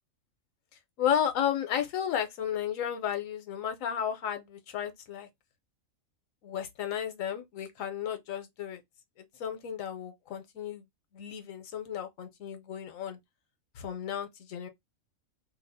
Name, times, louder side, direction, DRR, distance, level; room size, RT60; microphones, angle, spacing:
voice 1, 1.0-5.3 6.4-8.8 9.2-10.8 11.1-13.2 13.8-14.7, left 9 dB, 75° left, 1.1 m, -33 dB
2.7 x 2.1 x 3.9 m
omnidirectional pair, 1.4 m